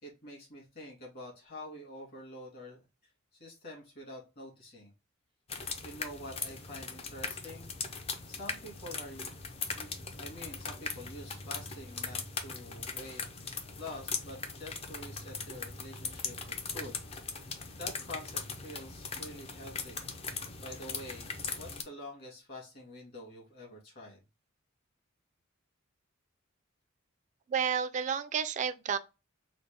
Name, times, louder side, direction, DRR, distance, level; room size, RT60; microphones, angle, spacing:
voice 1, 0.0-3.1 3.4-4.9 5.8-7.7 8.3-9.4 9.7-9.9 10.2-13.2 13.8-20.0 20.6-24.2, left 1 dB, 45° left, 1.9 m, -47 dB
sound 1, 5.5-21.8, left 5 dB, 30° left, 0.4 m, -40 dB
voice 2, 27.5-29.0, right 7 dB, 35° right, 0.3 m, -31 dB
4.0 x 2.0 x 3.3 m
head